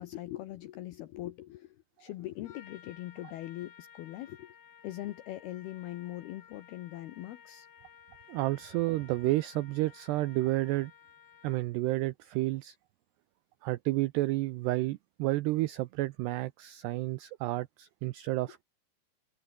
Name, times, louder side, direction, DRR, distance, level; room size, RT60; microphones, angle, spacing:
voice 1, 0.0-4.5 4.8-7.7, left 15 dB, 75° left, 2.3 m, -41 dB
Trumpet, 2.4-11.8, left 8 dB, 50° left, 1.8 m, -56 dB
voice 2, 8.3-10.9 11.4-12.8 13.6-18.6, right 18 dB, 90° right, 2.3 m, -31 dB
omnidirectional pair, 5.7 m